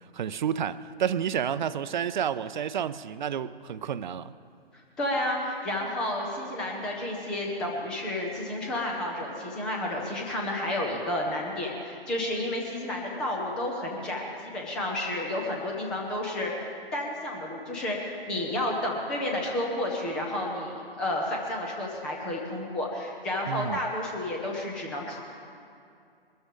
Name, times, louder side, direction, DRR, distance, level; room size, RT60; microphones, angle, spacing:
voice 1, 0.1-4.3 23.5-23.8, right 8 dB, 50° right, 0.6 m, -30 dB
voice 2, 5.0-16.7 16.9-25.2, left 1 dB, 5° left, 0.3 m, -31 dB
22.0 x 13.0 x 3.5 m
figure-of-eight pair, 135°, 30 cm